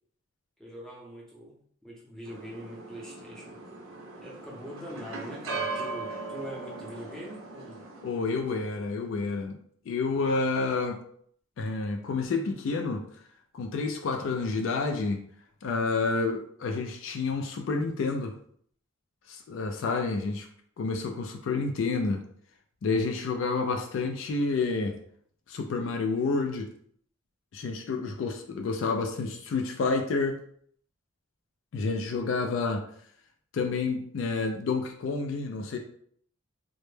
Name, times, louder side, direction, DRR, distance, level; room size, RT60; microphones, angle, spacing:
voice 1, 0.6-3.6 4.2-7.9, equal, 5° left, -5 dB, 0.6 m, -43 dB
sound 1, 2.3-8.8, right 3 dB, 85° right, 0.6 m, -39 dB
voice 2, 8.0-9.6 9.9-11.0 11.6-13.1 13.5-15.2 15.6-18.3 19.3-20.5 20.8-22.2 22.8-25.0 25.5-26.7 27.5-30.4 31.7-32.8 33.5-35.8, left 4 dB, 65° left, 4 dB, 0.3 m, -29 dB
2.1 x 2.1 x 3.1 m, 0.62 s
head